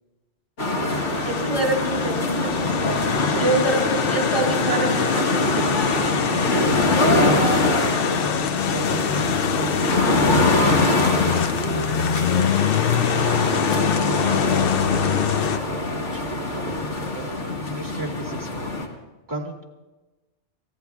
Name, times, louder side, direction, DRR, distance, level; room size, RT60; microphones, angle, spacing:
sound 1, 0.6-18.9, left 2 dB, 90° left, 2.0 m, -23 dB
sound 2, 0.9-15.6, left 9 dB, 60° left, 0.7 m, -25 dB
voice 1, 1.2-3.1 3.4-5.7, right 2 dB, 35° right, 0 dB, 4.8 m, -26 dB
voice 2, 3.2-4.0 5.5-5.7 6.5-9.7 10.2-11.7 12.3-13.1 13.7-16.2 17.1-18.7 19.3-19.6, right 2 dB, 15° right, 1 dB, 1.8 m, -35 dB
29.0 x 15.0 x 2.3 m, 1.1 s
omnidirectional pair, 1.2 m